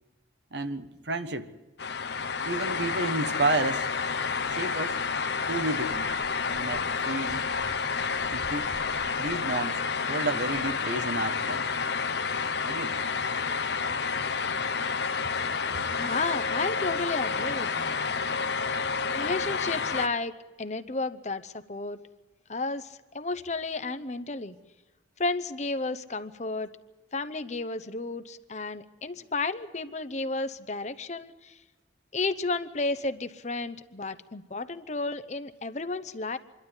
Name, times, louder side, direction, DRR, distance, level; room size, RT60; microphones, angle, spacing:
voice 1, 0.5-1.5 2.4-3.9 4.5-5.0 5.5-6.1 6.4-7.4 8.3-8.8 9.2-11.7 12.6-13.1, right 2 dB, 70° right, 1.2 m, -31 dB
sound 1, 1.8-20.1, left 5 dB, 70° left, 1.0 m, -30 dB
voice 2, 15.9-18.0 19.1-20.3 20.6-22.0 22.5-24.5 25.2-26.7 27.1-31.5 32.1-36.4, left 3 dB, 40° left, 0.8 m, -32 dB
26.0 x 12.0 x 9.7 m
head